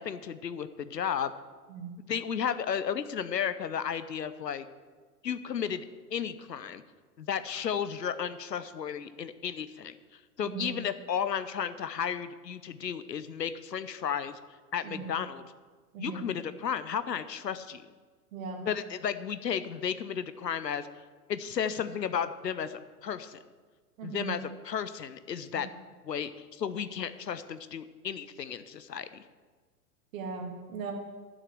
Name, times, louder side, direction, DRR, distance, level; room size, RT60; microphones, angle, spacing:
voice 1, 0.0-1.3 2.1-4.6 5.2-5.8 6.1-6.8 7.2-10.0 10.4-14.4 14.7-15.4 16.0-17.8 18.7-20.9 21.3-23.4 24.0-25.7 26.0-29.2, left 8 dB, 85° left, 13 dB, 0.8 m, -33 dB
voice 2, 10.4-10.7 14.8-15.1 15.9-16.3 18.3-18.6 24.0-24.4 25.5-25.6 30.1-30.9, right 5 dB, 55° right, 2 dB, 2.6 m, -38 dB
10.5 x 6.6 x 7.7 m, 1.4 s
figure-of-eight pair, 100°, 49 cm